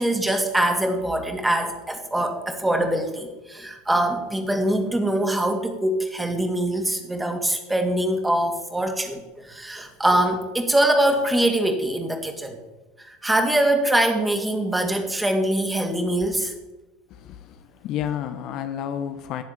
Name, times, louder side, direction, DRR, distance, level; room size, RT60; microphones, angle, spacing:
voice 1, 0.0-12.6 13.0-16.5, right 1 dB, 10° right, 5 dB, 2.7 m, -23 dB
voice 2, 17.1-19.4, left 10 dB, 45° left, 8 dB, 1.1 m, -31 dB
17.5 x 7.3 x 9.1 m, 1.1 s
figure-of-eight pair, 75°, 0 cm